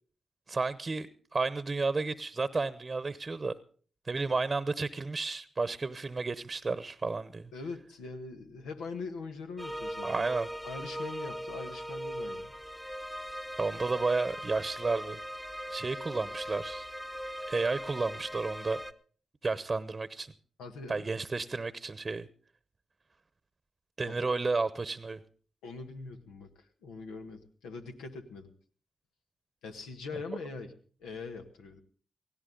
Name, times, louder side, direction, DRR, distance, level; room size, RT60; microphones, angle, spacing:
voice 1, 0.5-3.6 4.0-7.5 10.0-10.5 13.6-15.2 15.7-16.9 17.5-18.8 19.4-20.3 20.9-22.3 24.0-25.2, right 3 dB, 40° right, 15 dB, 0.9 m, -32 dB
voice 2, 7.5-10.3 10.6-12.5 20.6-21.1 24.0-24.3 25.6-28.5 29.6-30.7 31.0-31.8, left 4 dB, 90° left, 5 dB, 1.5 m, -42 dB
sound 1, 9.6-18.9, equal, ahead, 1.0 m, -40 dB
18.0 x 16.0 x 3.9 m, 0.43 s
supercardioid pair, 40°, 0 cm